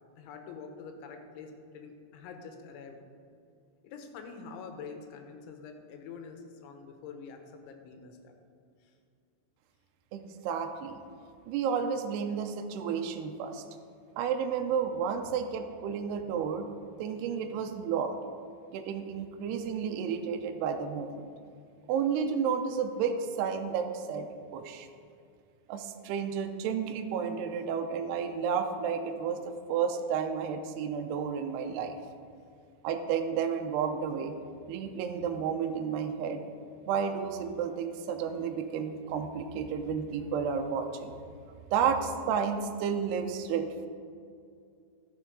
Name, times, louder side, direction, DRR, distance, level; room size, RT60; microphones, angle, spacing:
voice 1, 0.2-3.0 3.8-8.3 8.8-8.9, left 5 dB, 90° left, 5 dB, 3.3 m, -46 dB
voice 2, 10.1-11.0 11.5-13.6 14.2-16.7 17.0-18.1 18.7-21.3 21.9-24.3 24.5-24.9 25.7-29.4 29.7-32.0 32.8-34.3 34.7-36.4 36.9-41.1 41.7-43.9, right 7 dB, 85° right, 5 dB, 2.4 m, -31 dB
13.0 x 6.8 x 5.1 m, 2.4 s
omnidirectional pair, 5.3 m